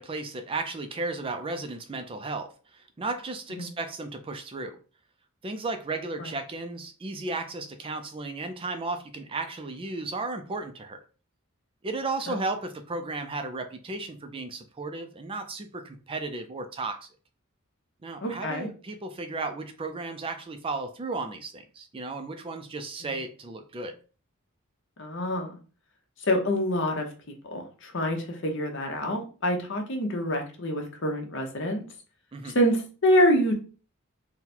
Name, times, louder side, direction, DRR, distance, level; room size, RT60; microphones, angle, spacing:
voice 1, 0.0-4.8 5.4-11.0 11.8-17.1 18.0-24.0 32.3-32.6, right 3 dB, 25° right, 0.4 m, -34 dB
voice 2, 18.2-18.7 25.0-25.6 26.3-27.1 27.4-31.8 32.4-33.5, equal, 60° left, 0.9 m, -26 dB
3.8 x 2.2 x 4.3 m
head